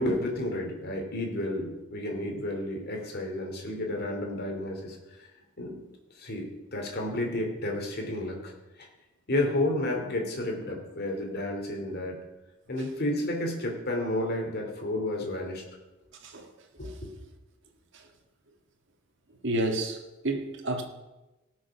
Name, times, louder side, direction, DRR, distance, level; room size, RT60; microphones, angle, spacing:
voice 1, 0.0-5.0 5.6-5.8 6.2-8.5 8.8-8.9 9.3-12.2 12.7-15.6 16.8-17.1, left 1 dB, 50° left, 2.7 m, -31 dB
voice 2, 19.4-20.8, right 1 dB, 60° right, 1.6 m, -31 dB
17.5 x 6.4 x 6.0 m
head